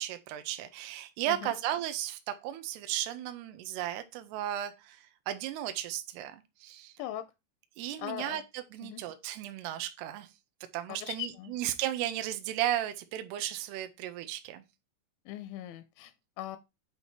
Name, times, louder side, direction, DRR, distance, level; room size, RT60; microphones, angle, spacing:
voice 1, 0.0-6.9 7.8-10.3 10.7-14.6, right 12 dB, 85° right, 2.5 m, -35 dB
voice 2, 8.0-8.4 8.8-9.0 11.0-11.5 15.3-16.6, left 12 dB, 85° left, 2.9 m, -40 dB
8.1 x 2.8 x 4.4 m
omnidirectional pair, 5.1 m